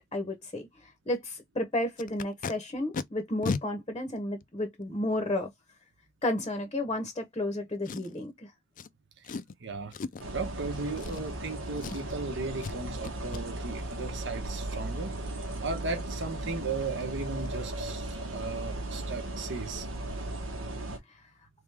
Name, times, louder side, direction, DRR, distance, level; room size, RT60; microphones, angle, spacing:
voice 1, 0.0-5.5 6.2-8.5, left 1 dB, 25° left, 0.8 m, -32 dB
Packing tape duct tape, 2.0-2.5 2.9-3.0 3.4-3.6 4.4-4.5 7.8-8.3 8.8-8.9 9.2-9.5 9.9-10.3 10.9-11.5 11.8-12.2 12.6-12.8 13.0-13.4 16.5-16.6 16.9-17.0 17.4-17.6 17.8-18.1 18.3-18.4, left 4 dB, 40° left, 0.4 m, -36 dB
voice 2, 9.2-10.0 10.3-15.1 15.6-19.9, right 3 dB, 60° right, 1.1 m, -36 dB
sound 1, 10.2-21.0, right 1 dB, 80° right, 1.2 m, -36 dB
3.5 x 3.4 x 3.3 m
head